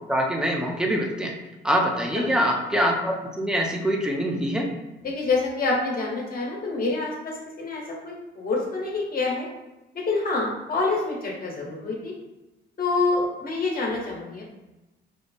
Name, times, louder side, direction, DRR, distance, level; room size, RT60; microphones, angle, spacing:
voice 1, 0.1-1.3 1.6-4.7, equal, 5° right, 1 dB, 0.8 m, -24 dB
voice 2, 2.1-2.5 5.0-9.5 10.1-12.1 12.8-14.4, left 3 dB, 45° left, -2 dB, 1.5 m, -27 dB
5.1 x 2.3 x 4.2 m, 1.0 s
cardioid pair, 90°, 20 cm